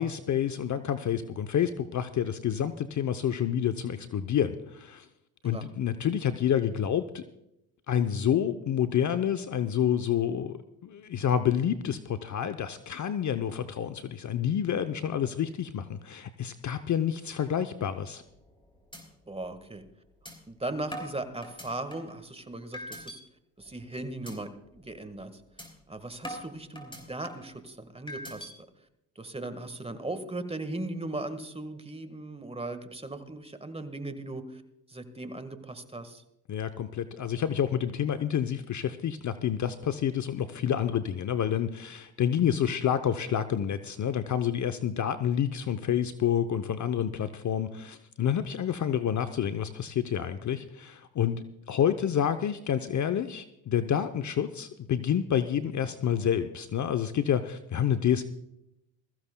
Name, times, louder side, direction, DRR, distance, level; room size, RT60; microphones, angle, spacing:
voice 1, 0.0-5.1 5.4-7.2 7.9-18.2 36.5-58.2, left 9 dB, 40° left, 10 dB, 0.8 m, -28 dB
sound 1, 18.3-18.6 18.9-19.0 19.4-19.5 20.3-20.4 20.9-22.2 22.7-23.2 23.6-23.8 24.3-24.4 24.8-25.0 25.6-25.7 26.2-27.5 28.1-28.5, equal, 10° left, 4.2 m, -41 dB
voice 2, 19.3-19.8 20.5-23.2 23.6-25.3 25.9-28.5 29.1-34.6 34.9-36.2, right 2 dB, 10° right, 10 dB, 1.6 m, -38 dB
22.0 x 14.5 x 2.3 m, 0.84 s
supercardioid pair, 70°, 47 cm